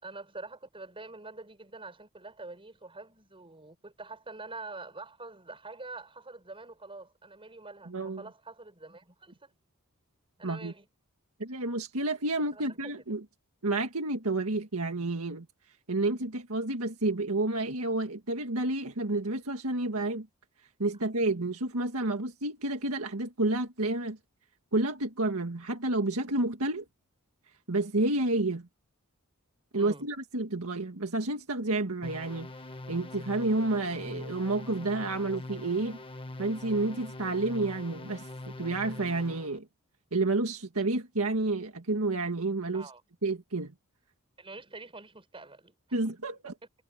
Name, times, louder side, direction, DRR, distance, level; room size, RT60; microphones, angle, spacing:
voice 1, 0.0-9.5 10.4-10.9 12.5-12.9 29.8-30.1 42.7-43.0 44.4-45.8, right 3 dB, 25° right, 7.1 m, -45 dB
voice 2, 7.9-8.2 10.4-10.7 11.4-13.2 13.6-15.5 15.9-20.3 20.8-24.2 24.7-26.9 27.7-28.7 29.7-32.5 32.9-36.0 36.4-38.3 38.6-39.7 40.1-42.9 43.2-43.7 45.9-46.5, right 2 dB, 70° right, 1.9 m, -30 dB
sound 1, 32.0-39.6, left 2 dB, 25° left, 1.3 m, -43 dB
head